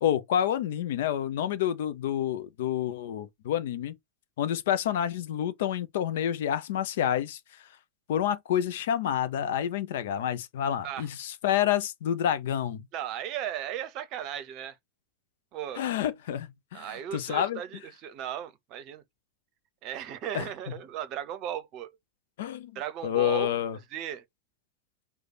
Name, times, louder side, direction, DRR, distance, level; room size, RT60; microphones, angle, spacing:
voice 1, 0.0-4.0 4.4-7.4 8.1-12.9 15.8-17.6 20.3-20.5 22.4-22.7 23.0-23.8, left 10 dB, 55° left, 0.5 m, -28 dB
voice 2, 12.9-14.8 15.5-15.9 16.7-19.0 19.8-21.9 22.7-24.2, right 10 dB, 40° right, 0.8 m, -36 dB
4.8 x 2.3 x 4.0 m
figure-of-eight pair, 90°, 0 cm